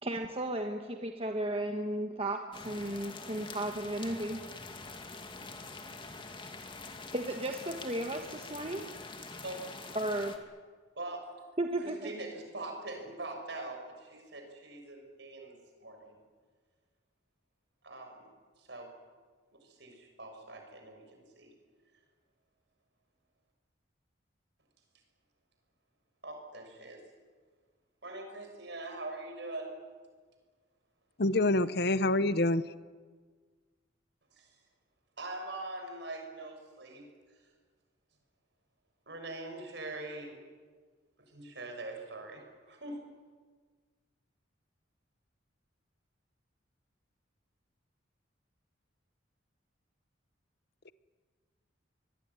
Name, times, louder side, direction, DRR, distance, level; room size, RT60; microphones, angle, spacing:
voice 1, 0.0-4.4 7.1-8.9 9.9-10.3 11.6-12.1, right 1 dB, 30° right, 4 dB, 1.4 m, -34 dB
sound 1, 2.5-10.4, left 3 dB, 25° left, 2.3 m, -45 dB
voice 2, 9.2-9.7 11.0-11.3 11.8-16.2 17.8-18.3 18.6-18.9 19.5-21.5 26.2-27.0 28.0-29.8 34.3-34.6 35.2-37.1 39.1-40.4 41.3-43.0, right 2 dB, 60° right, 3 dB, 6.8 m, -43 dB
voice 3, 31.2-32.6 50.9-51.0, left 2 dB, 55° left, 15 dB, 0.8 m, -26 dB
25.0 x 21.5 x 9.8 m, 1.5 s
head